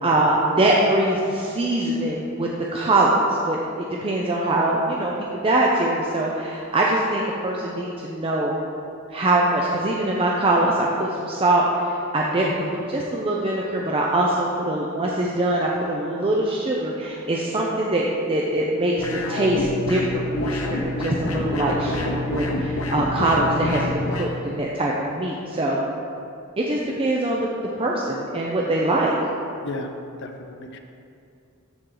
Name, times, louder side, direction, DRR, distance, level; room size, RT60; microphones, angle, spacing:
voice 1, 0.0-8.6 9.1-12.5 12.7-25.8 26.6-27.5 27.8-29.1, right 1 dB, 25° right, -3 dB, 0.6 m, -23 dB
voice 2, 12.4-12.7 29.6-29.9 30.2-30.8, left 3 dB, 55° left, 4 dB, 0.6 m, -33 dB
sound 1, 19.0-24.3, left 2 dB, 85° left, 0.9 m, -27 dB
13.0 x 4.5 x 3.9 m, 2.6 s
head